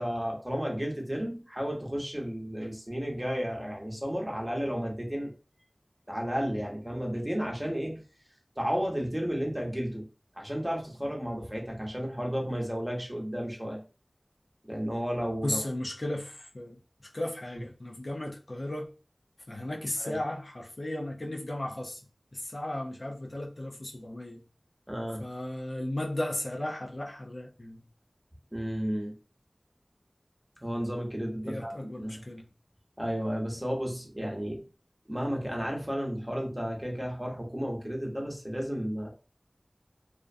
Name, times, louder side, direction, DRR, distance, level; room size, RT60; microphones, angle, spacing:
voice 1, 0.0-5.3 6.1-8.0 8.6-10.1 10.3-13.8 14.6-15.6 20.0-20.2 24.9-25.3 28.5-29.1 30.6-32.2 33.0-34.6 35.1-39.1, equal, 15° right, 0.8 m, -33 dB
voice 2, 15.4-16.8 17.1-18.9 19.5-22.0 22.3-24.4 25.2-27.9 31.4-32.5, left 1 dB, 70° left, 0.5 m, -35 dB
2.4 x 2.1 x 2.5 m
wide cardioid pair, 40°, 0 cm